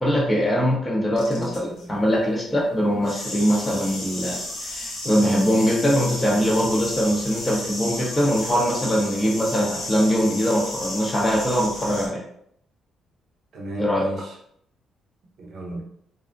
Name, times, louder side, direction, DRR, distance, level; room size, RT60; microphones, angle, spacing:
voice 1, 0.0-4.4 4.7-12.2 13.8-14.0, equal, 15° left, -3 dB, 0.7 m, -22 dB
sound 1, 1.2-1.8 3.0-12.1, left 1 dB, 75° left, 0.9 m, -33 dB
voice 2, 1.3-2.0 13.5-14.3 15.4-15.8, right 1 dB, 60° right, -1 dB, 0.5 m, -34 dB
2.5 x 2.1 x 2.4 m, 0.70 s
cardioid pair, 130°, 0 cm